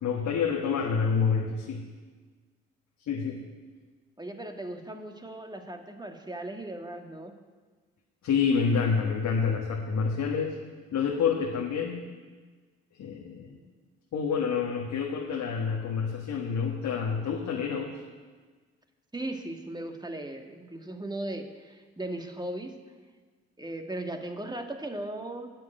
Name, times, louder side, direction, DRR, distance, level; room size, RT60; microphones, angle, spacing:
voice 1, 0.0-1.8 3.0-3.4 8.2-10.5 10.9-12.0 12.9-13.6 14.1-17.9, left 6 dB, 65° left, -1 dB, 1.5 m, -28 dB
voice 2, 4.2-7.4 19.1-22.8 23.6-25.5, right 1 dB, 15° right, 4 dB, 1.8 m, -37 dB
10.5 x 7.7 x 9.2 m, 1.4 s
hypercardioid pair, 50°, 31 cm